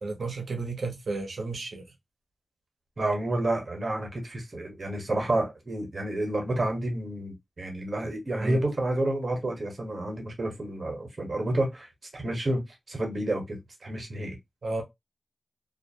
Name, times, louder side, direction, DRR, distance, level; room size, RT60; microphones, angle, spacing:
voice 1, 0.0-1.8 8.4-8.6 14.6-14.8, right 3 dB, 75° right, 0.9 m, -32 dB
voice 2, 3.0-11.9 12.1-14.4, right 1 dB, 60° right, 1.2 m, -30 dB
2.5 x 2.1 x 2.7 m
cardioid pair, 40°, 0 cm